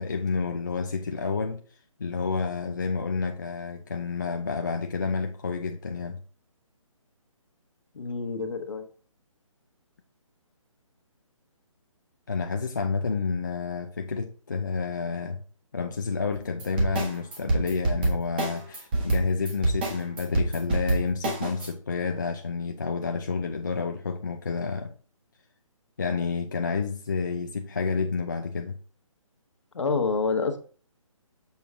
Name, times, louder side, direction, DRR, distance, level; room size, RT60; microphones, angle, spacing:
voice 1, 0.0-1.6 2.0-6.2 12.3-15.4 15.7-24.9 26.0-28.8, left 4 dB, 35° left, 0.5 m, -29 dB
voice 2, 7.9-8.9 29.7-30.6, left 4 dB, 60° left, 1.2 m, -27 dB
sound 1, 16.3-21.7, right 2 dB, 15° right, 1.2 m, -26 dB
7.0 x 4.5 x 3.6 m
hypercardioid pair, 175°, 18 cm